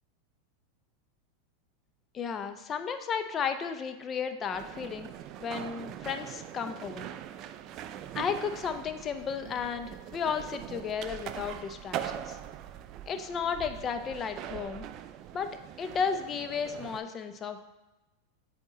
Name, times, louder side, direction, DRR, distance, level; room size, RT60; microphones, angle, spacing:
voice 1, 2.1-5.1 5.4-7.1 8.1-12.4 13.1-14.9 15.3-15.5 15.8-17.6, left 6 dB, 30° left, 9 dB, 0.5 m, -33 dB
sound 1, 4.5-17.0, right 11 dB, 45° right, 0.3 m, -42 dB
7.9 x 2.9 x 4.1 m, 1.1 s
hypercardioid pair, 105°, 0 cm